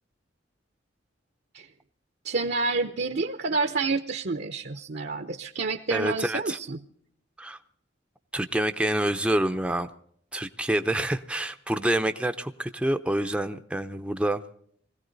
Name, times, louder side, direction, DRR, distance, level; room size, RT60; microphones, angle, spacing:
voice 1, 2.2-6.8, right 3 dB, 55° right, 8 dB, 0.7 m, -29 dB
voice 2, 5.9-6.6 7.4-7.6 8.3-9.9 10.3-14.4, right 1 dB, 5° right, 8 dB, 0.6 m, -27 dB
21.0 x 16.0 x 4.0 m, 0.62 s
head